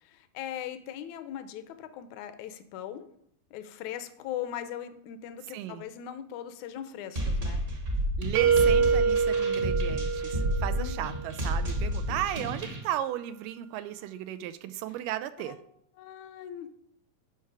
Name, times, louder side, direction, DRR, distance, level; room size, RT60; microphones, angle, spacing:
voice 1, 0.0-3.1 3.5-7.6 10.7-10.9 15.5-15.6 16.0-16.7, left 10 dB, 75° left, 10 dB, 1.9 m, -39 dB
voice 2, 5.5-5.8 8.2-15.6, right 12 dB, 90° right, 12 dB, 2.2 m, -35 dB
sound 1, 7.2-12.8, equal, 35° right, 0.8 m, -31 dB
sound 2, 8.3-11.2, right 5 dB, 70° right, 1.4 m, -25 dB
11.0 x 5.8 x 4.7 m, 0.72 s
omnidirectional pair, 3.8 m